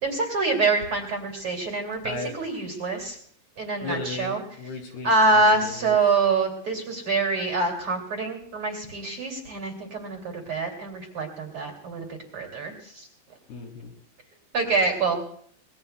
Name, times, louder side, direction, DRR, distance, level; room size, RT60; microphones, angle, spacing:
voice 1, 0.0-3.2 3.6-4.4 5.0-12.0 12.3-13.1 14.5-15.2, right 3 dB, 35° right, 1 dB, 3.1 m, -25 dB
voice 2, 2.0-2.4 3.8-5.9 13.5-13.9, left 3 dB, 75° left, 2 dB, 5.3 m, -36 dB
25.5 x 21.0 x 2.3 m, 0.62 s
omnidirectional pair, 4.8 m